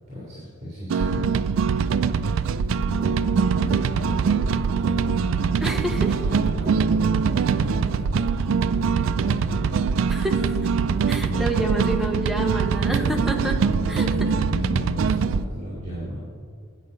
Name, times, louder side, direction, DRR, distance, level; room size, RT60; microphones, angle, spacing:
voice 1, 0.1-2.1 2.8-9.9 11.1-11.8 12.7-16.2, equal, 35° right, -7 dB, 2.6 m, -34 dB
sound 1, 0.9-15.4, right 5 dB, 70° right, 0.3 m, -23 dB
voice 2, 5.6-6.1 10.1-10.6 11.1-13.6 13.9-14.3, right 1 dB, ahead, 2 dB, 0.6 m, -28 dB
8.4 x 8.1 x 5.3 m, 2.1 s
head